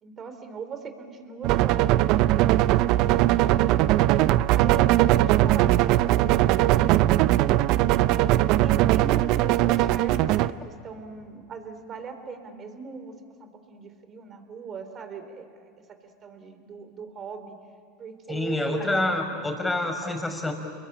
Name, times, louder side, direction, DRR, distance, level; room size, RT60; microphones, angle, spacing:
voice 1, 0.0-3.4 4.4-6.9 8.6-17.5 18.0-19.0, right 5 dB, 35° right, 8 dB, 3.5 m, -39 dB
sound 1, 1.4-10.5, right 15 dB, 55° right, 0.7 m, -20 dB
voice 2, 18.3-20.5, left 2 dB, 10° left, 4 dB, 5.5 m, -27 dB
29.0 x 22.0 x 8.9 m, 2.2 s
hypercardioid pair, 95°, 0 cm